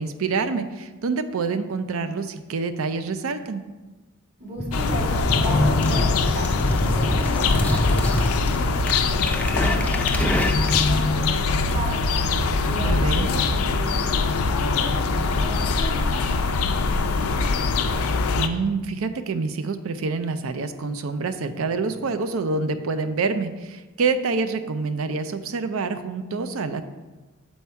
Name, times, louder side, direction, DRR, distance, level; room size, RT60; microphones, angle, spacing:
voice 1, 0.0-3.6 12.8-13.3 18.4-26.8, right 4 dB, 75° right, 10 dB, 0.5 m, -27 dB
voice 2, 4.4-12.0 12.7-17.5, right 1 dB, 50° right, -3 dB, 1.8 m, -35 dB
sound 1, 4.6-11.0, left 1 dB, 5° left, 0.4 m, -26 dB
sound 2, 4.7-18.5, left 3 dB, 85° left, 0.5 m, -22 dB
7.2 x 4.2 x 4.6 m, 1.2 s
head